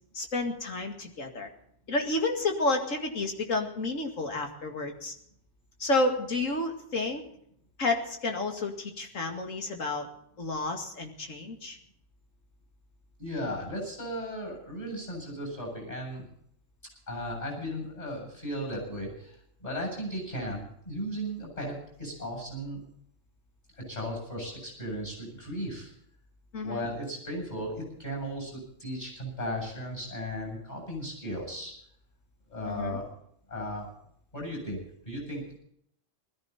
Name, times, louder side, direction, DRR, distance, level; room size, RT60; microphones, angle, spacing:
voice 1, 0.1-1.5 1.9-5.1 5.8-7.2 7.8-10.1 10.4-11.8 26.5-26.9 32.7-33.0, left 2 dB, 85° left, 4 dB, 2.6 m, -30 dB
voice 2, 13.2-16.3 17.1-21.7 22.0-22.8 23.9-25.9 26.6-31.7 32.5-33.1 33.5-33.9 34.3-34.8 35.0-35.6, equal, 35° left, 0 dB, 8.3 m, -36 dB
20.0 x 14.5 x 4.2 m, 0.70 s
omnidirectional pair, 1.3 m